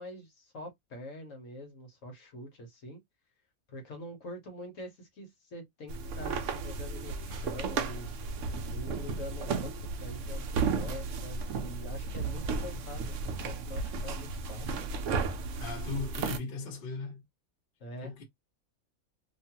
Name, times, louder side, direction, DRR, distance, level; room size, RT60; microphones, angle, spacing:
voice 1, 0.0-3.0 3.7-8.1 8.7-14.8 17.8-18.1, left 1 dB, 65° left, 1.3 m, -45 dB
sound 1, 5.9-16.4, right 4 dB, 65° right, 0.9 m, -34 dB
voice 2, 15.6-17.2 18.0-18.2, left 4 dB, 45° left, 1.0 m, -38 dB
2.8 x 2.4 x 2.8 m
omnidirectional pair, 1.5 m